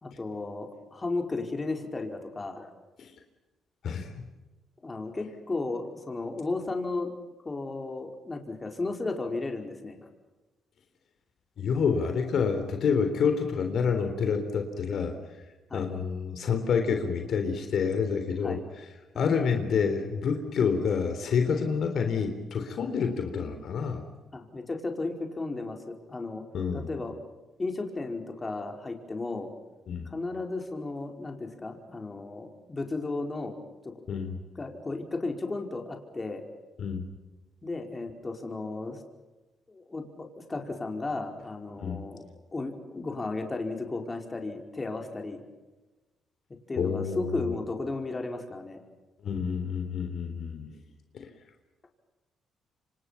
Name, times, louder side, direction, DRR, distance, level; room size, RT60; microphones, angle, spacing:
voice 1, 0.0-2.7 4.8-7.1 7.4-10.1 15.7-15.9 18.4-18.7 19.1-19.3 24.3-26.4 26.7-27.2 27.6-29.5 30.0-33.6 33.8-33.9 34.5-36.4 37.6-39.0 39.7-42.2 42.5-45.4 46.7-48.8, left 3 dB, 25° left, 3 dB, 4.9 m, -34 dB
voice 2, 11.6-15.1 15.7-18.8 19.2-24.0 26.5-26.9 29.9-30.1 34.1-34.4 36.8-37.1 41.8-42.0 46.8-47.5 49.2-50.7, left 6 dB, 65° left, 6 dB, 3.7 m, -28 dB
28.0 x 25.5 x 5.8 m, 1.1 s
cardioid pair, 90°, 0 cm